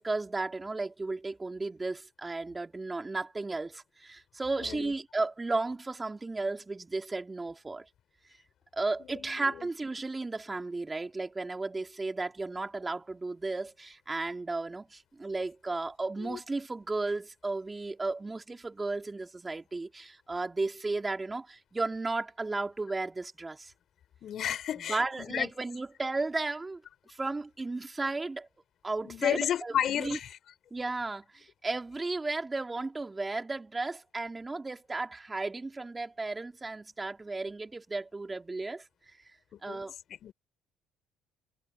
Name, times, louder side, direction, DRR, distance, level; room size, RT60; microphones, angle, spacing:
voice 1, 0.0-7.9 8.7-23.7 24.8-26.8 27.1-28.5 28.8-30.2 30.7-38.9 39.6-39.9, right 3 dB, 20° right, 3.3 m, -34 dB
voice 2, 4.6-4.9 9.0-9.7 16.2-16.4 24.2-25.5 29.0-30.4 39.5-40.3, left 10 dB, 60° left, 6.4 m, -33 dB
supercardioid pair, 80°, 0 cm